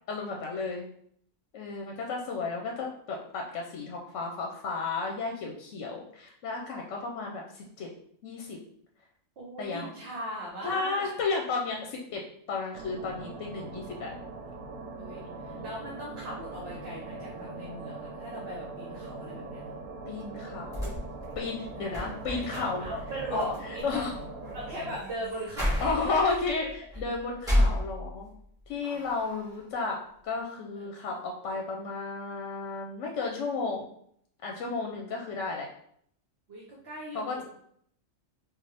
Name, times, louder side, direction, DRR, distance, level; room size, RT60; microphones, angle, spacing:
voice 1, 0.1-0.9 1.5-7.9 8.2-8.6 9.6-9.9 10.6-14.1 15.3-15.6 20.1-21.0 21.4-22.9 23.3-24.1 25.8-26.7 27.0-28.3 28.7-33.9 34.4-35.7 37.1-37.4, left 4 dB, 70° left, 1 dB, 0.9 m, -33 dB
voice 2, 9.4-11.1 15.0-19.6 21.7-21.8 22.3-24.0 24.5-26.3 30.8-30.9 36.5-37.4, right 1 dB, 55° right, -3 dB, 1.0 m, -39 dB
sound 1, 12.7-25.0, right 3 dB, 85° right, 1.0 m, -41 dB
sound 2, 20.7-28.4 28.8-29.6, equal, 5° right, 1.4 m, -33 dB
3.9 x 2.4 x 3.3 m, 0.66 s
omnidirectional pair, 1.3 m